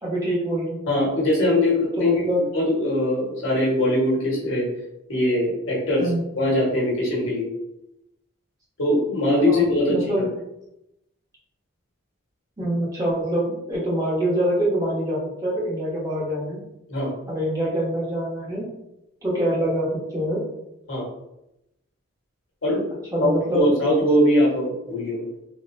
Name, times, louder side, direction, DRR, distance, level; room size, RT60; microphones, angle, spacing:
voice 1, 0.0-0.8 2.0-2.4 6.0-6.2 9.4-10.3 12.6-16.6 17.3-18.6 19.2-20.4 23.1-23.7, right 1 dB, 15° right, -7 dB, 1.1 m, -25 dB
voice 2, 0.9-2.2 2.5-4.7 5.1-6.1 6.3-7.5 8.8-10.2 16.9-17.1 20.9-21.1 22.6-22.8 23.2-25.2, left 1 dB, 70° left, -4 dB, 1.4 m, -21 dB
3.7 x 2.4 x 2.6 m, 0.86 s
head